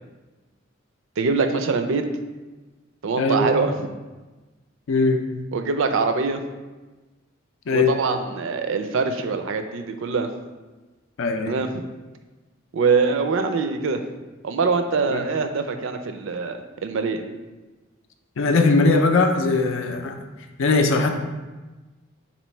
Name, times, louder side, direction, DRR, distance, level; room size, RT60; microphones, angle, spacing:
voice 1, 1.2-2.0 3.0-3.9 5.5-6.4 7.7-10.3 11.5-11.8 12.7-14.0 14.4-17.2, right 4 dB, 70° right, 7 dB, 0.4 m, -23 dB
voice 2, 3.2-3.5 4.9-5.2 7.7-7.9 11.2-11.6 15.1-15.2 18.4-20.2 20.6-21.1, left 3 dB, 70° left, 5 dB, 0.5 m, -20 dB
4.0 x 3.0 x 4.3 m, 1.2 s
head